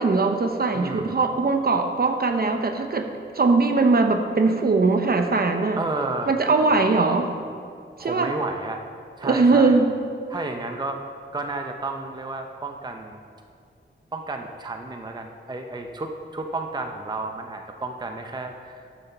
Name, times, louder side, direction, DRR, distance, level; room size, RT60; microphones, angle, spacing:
voice 1, 0.0-3.1 3.3-5.8 6.3-7.3 8.0-8.3 9.2-9.9, right 3 dB, 50° right, 5 dB, 0.9 m, -20 dB
voice 2, 0.7-1.2 5.8-6.3 6.6-6.7 8.0-8.8 9.2-9.8 10.3-11.0 11.3-13.2 14.1-18.9, right 2 dB, 20° right, 4 dB, 0.6 m, -32 dB
12.5 x 7.1 x 5.6 m, 2.3 s
wide cardioid pair, 130°, 20 cm